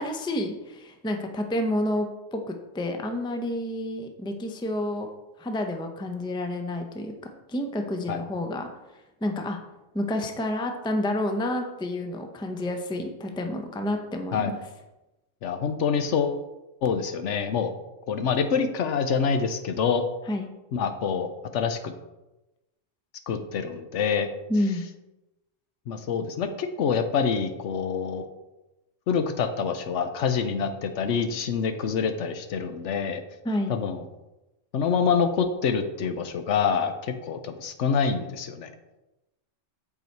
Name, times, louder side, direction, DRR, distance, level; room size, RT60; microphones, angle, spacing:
voice 1, 0.0-5.1 5.4-8.7 9.2-9.6 9.9-14.6 20.3-20.5 24.5-24.9 33.4-33.7, left 1 dB, 5° left, 4 dB, 0.5 m, -29 dB
voice 2, 15.4-16.4 16.8-17.7 18.1-20.0 20.7-21.9 23.3-24.3 25.9-28.3 29.1-33.2 33.7-34.0 34.7-38.7, left 6 dB, 70° left, 8 dB, 1.0 m, -26 dB
8.1 x 4.8 x 4.5 m, 1.0 s
omnidirectional pair, 1.3 m